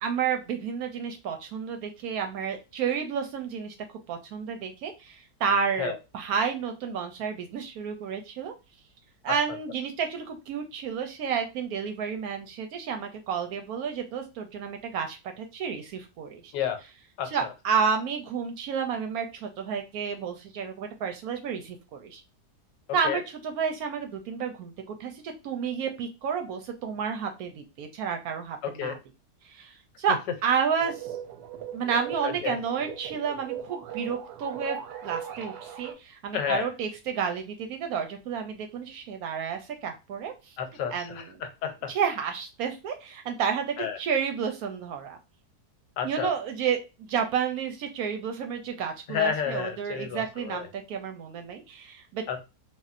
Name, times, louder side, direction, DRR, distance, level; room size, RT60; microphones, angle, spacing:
voice 1, 0.0-3.7 4.1-8.5 9.2-16.5 17.3-22.2 22.9-29.0 29.4-31.1 31.7-34.8 35.0-40.6 40.9-41.4 41.9-45.2 46.0-46.8 47.1-52.2, right 6 dB, 70° right, 0.9 m, -31 dB
voice 2, 17.2-17.5 23.0-23.2 28.6-29.0 32.2-32.6 36.3-36.7 40.6-41.9 43.8-44.0 46.0-46.3 49.1-50.7 52.3-52.4, left 8 dB, 90° left, 1.3 m, -31 dB
sound 1, 30.8-35.9, right 9 dB, 90° right, 1.3 m, -38 dB
3.5 x 2.3 x 2.5 m
omnidirectional pair, 1.8 m